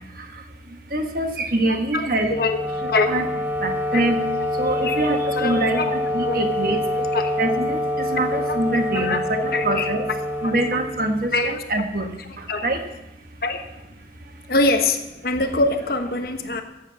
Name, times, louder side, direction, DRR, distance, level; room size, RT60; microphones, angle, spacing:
voice 1, 0.9-2.3 3.1-3.3 3.6-4.2 4.6-5.9 6.1-6.8 7.4-10.0 10.4-12.1 12.6-12.8, right 2 dB, 50° right, 5 dB, 1.4 m, -24 dB
voice 2, 1.9-2.6 2.9-3.1 3.9-4.0 4.8-5.0 5.4-6.0 6.2-6.4 7.1-7.6 8.2-8.6 8.9-9.9 10.4-10.5 11.3-11.6 12.5-12.7 13.4-13.7 14.5-16.6, left 2 dB, 55° left, 7 dB, 1.1 m, -24 dB
Wind instrument woodwind instrument, 2.2-11.5, left 1 dB, 10° right, 1.0 m, -26 dB
14.0 x 7.6 x 7.4 m, 0.95 s
head